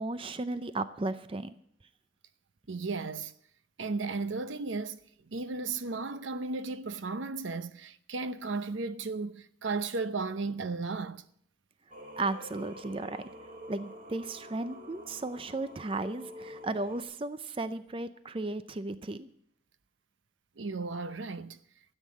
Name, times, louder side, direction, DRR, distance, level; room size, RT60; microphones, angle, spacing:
voice 1, 0.0-1.5 12.2-13.3 13.7-19.3, right 2 dB, 25° right, 0.5 m, -35 dB
voice 2, 2.7-3.3 3.8-5.0 5.3-11.2 20.6-21.6, right 3 dB, 80° right, 0.7 m, -35 dB
Singing, 11.9-17.0, equal, 45° right, 1.6 m, -47 dB
13.5 x 8.1 x 8.3 m
head